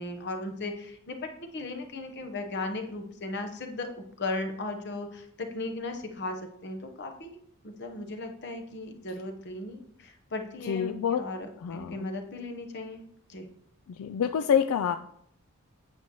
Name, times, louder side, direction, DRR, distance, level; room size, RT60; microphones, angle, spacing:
voice 1, 0.0-7.4 7.6-13.0 13.3-13.5, left 2 dB, 50° left, 5 dB, 0.9 m, -37 dB
voice 2, 10.7-11.2 11.6-12.1 13.9-15.0, left 8 dB, 85° left, 9 dB, 0.3 m, -27 dB
8.8 x 6.9 x 3.0 m, 0.68 s
head